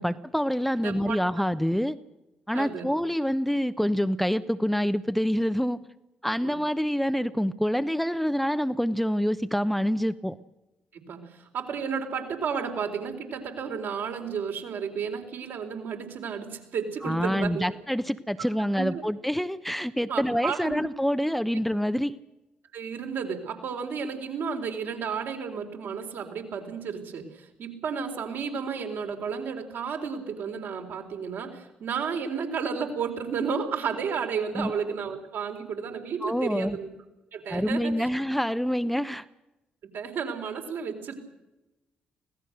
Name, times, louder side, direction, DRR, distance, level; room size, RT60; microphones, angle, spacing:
voice 1, 0.0-2.0 2.5-5.8 6.2-10.4 17.0-22.2 34.6-34.7 36.2-36.8 37.5-39.2, equal, 5° left, 12 dB, 1.0 m, -26 dB
voice 2, 0.8-1.2 2.5-2.9 6.4-6.5 10.9-17.7 18.7-19.0 20.1-20.7 22.7-36.9 37.3-38.1 39.8-41.1, right 6 dB, 65° right, 4 dB, 4.2 m, -32 dB
25.0 x 17.5 x 6.7 m, 0.97 s
hypercardioid pair, 40°, 4 cm